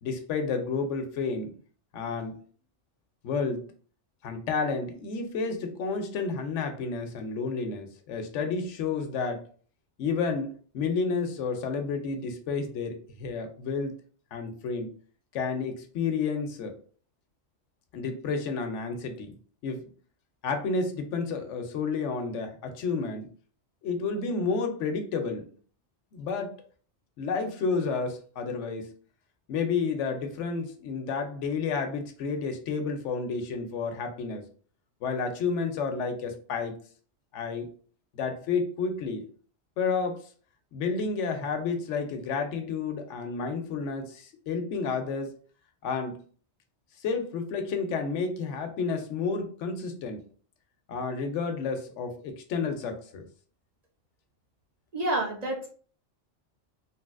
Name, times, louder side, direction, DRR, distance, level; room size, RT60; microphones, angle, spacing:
voice 1, 0.0-1.6 1.9-2.4 3.2-3.6 4.2-9.5 10.0-13.9 14.3-14.9 15.3-16.8 17.9-19.3 19.6-19.9 20.4-23.3 23.8-25.5 26.1-26.6 27.2-28.9 29.5-34.4 35.0-36.8 37.3-37.7 38.1-39.2 39.8-40.2 40.7-45.3 45.8-46.2 47.0-50.2 50.9-53.3, left 4 dB, 90° left, 6 dB, 1.0 m, -31 dB
voice 2, 54.9-55.7, right 1 dB, 45° right, 0 dB, 0.5 m, -28 dB
3.2 x 2.7 x 2.3 m, 0.43 s
omnidirectional pair, 1.2 m